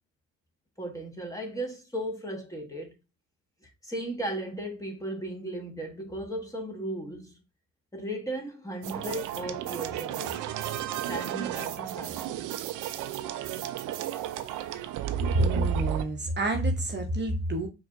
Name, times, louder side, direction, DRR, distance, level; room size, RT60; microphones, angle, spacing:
voice 1, 0.8-2.9 3.6-7.4 7.9-10.4 11.1-12.2, right 1 dB, 10° left, 1.2 m, -36 dB
sound 1, 8.8-16.0, right 13 dB, 90° right, 0.5 m, -33 dB
voice 2, 15.3-17.7, right 1 dB, 35° right, 0.8 m, -27 dB
4.4 x 3.1 x 2.5 m
cardioid pair, 90°, 30 cm